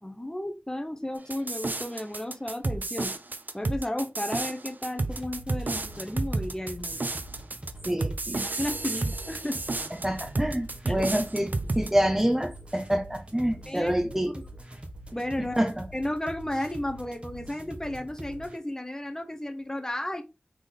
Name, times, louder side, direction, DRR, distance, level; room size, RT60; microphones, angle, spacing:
voice 1, 0.0-3.1 3.5-7.0 8.3-9.6 10.9-11.0 13.7-13.9 15.1-15.6 15.9-20.2, left 1 dB, 15° left, 6 dB, 0.8 m, -33 dB
sound 1, 1.3-11.9, right 3 dB, 65° right, 0.5 m, -31 dB
sound 2, 5.1-18.6, right 1 dB, 35° right, 1.2 m, -44 dB
voice 2, 7.8-8.4 9.9-14.5 15.4-15.9, equal, 10° right, 6 dB, 1.0 m, -27 dB
4.0 x 3.7 x 3.5 m, 0.26 s
wide cardioid pair, 45°, 3 cm